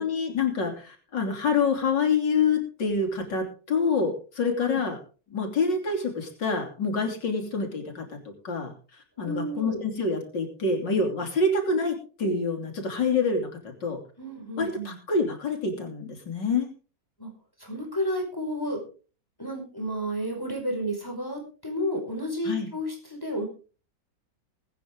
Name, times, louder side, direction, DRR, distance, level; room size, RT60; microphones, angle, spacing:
voice 1, 0.0-5.0 5.3-14.0 14.6-16.7 22.4-22.7, left 4 dB, 80° left, 4 dB, 3.7 m, -27 dB
voice 2, 9.2-9.8 14.2-15.0 17.2-17.3 17.6-18.8 19.4-23.4, equal, 10° left, 1 dB, 5.2 m, -31 dB
21.5 x 9.5 x 3.7 m, 0.37 s
omnidirectional pair, 1.9 m